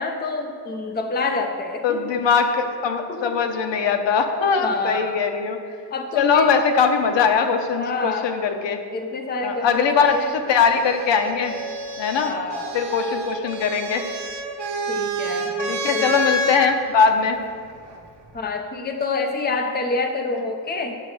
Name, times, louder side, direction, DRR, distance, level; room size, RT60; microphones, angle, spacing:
voice 1, 0.0-2.0 3.1-3.4 4.6-5.2 5.9-6.5 7.8-8.3 8.9-9.8 10.1-10.3 12.2-12.8 14.9-16.1 18.3-20.9, left 3 dB, 25° left, 4 dB, 0.6 m, -27 dB
voice 2, 1.8-5.6 6.1-8.8 9.4-11.6 12.0-12.3 12.7-14.1 15.7-17.4, left 6 dB, 85° left, 6 dB, 0.9 m, -21 dB
sound 1, 10.0-16.6 17.8-18.4, right 1 dB, 80° right, 1.2 m, -29 dB
8.1 x 6.8 x 6.3 m, 2.2 s
wide cardioid pair, 170°, 42 cm